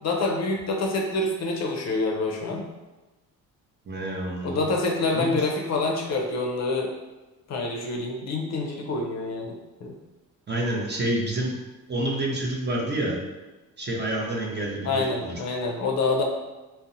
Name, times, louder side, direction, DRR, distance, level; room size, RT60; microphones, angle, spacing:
voice 1, 0.0-2.6 4.4-6.9 7.5-9.5 9.8-9.9 14.8-16.2, left 3 dB, 50° left, 1 dB, 0.5 m, -26 dB
voice 2, 3.9-4.6 5.1-5.5 10.5-11.5 11.9-13.2 13.8-15.3, right 1 dB, 30° right, -2 dB, 0.6 m, -28 dB
2.6 x 2.1 x 2.6 m, 1.1 s
supercardioid pair, 70°, 36 cm